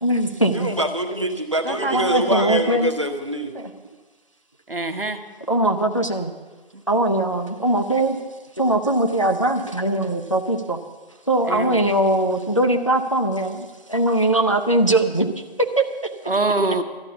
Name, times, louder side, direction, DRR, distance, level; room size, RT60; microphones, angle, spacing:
voice 1, 0.0-0.7 1.9-2.9 3.6-3.7 5.5-6.3 6.9-8.2 8.6-10.8 11.3-15.3 15.6-16.1, right 1 dB, 30° left, 5 dB, 0.6 m, -21 dB
voice 2, 0.5-3.5, right 1 dB, 30° right, 5 dB, 0.8 m, -24 dB
voice 3, 1.6-2.3 4.7-5.2 6.7-6.8 11.5-11.9 16.3-16.8, right 2 dB, 65° right, 7 dB, 1.2 m, -25 dB
12.5 x 9.6 x 7.0 m, 1.3 s
figure-of-eight pair, 170°, 31 cm